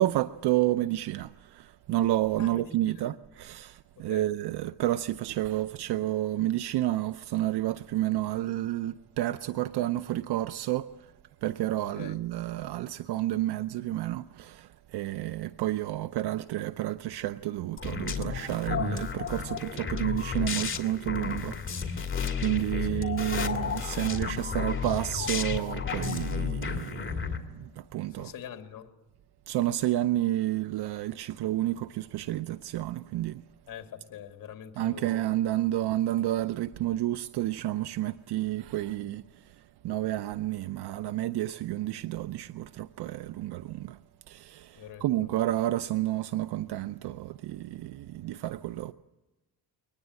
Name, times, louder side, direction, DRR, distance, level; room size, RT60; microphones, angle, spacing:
voice 1, 0.0-11.1 11.4-28.3 29.5-33.4 34.8-44.0 44.3-48.9, right 14 dB, 80° right, 0.7 m, -30 dB
voice 2, 2.4-3.1 4.0-4.3 11.9-12.2 22.9-23.1 28.2-28.9 33.7-35.2 44.8-45.3, left 9 dB, 55° left, 2.3 m, -44 dB
sound 1, 17.8-27.4, left 6 dB, 30° left, 2.6 m, -32 dB
23.0 x 19.5 x 9.1 m
cardioid pair, 105°, 39 cm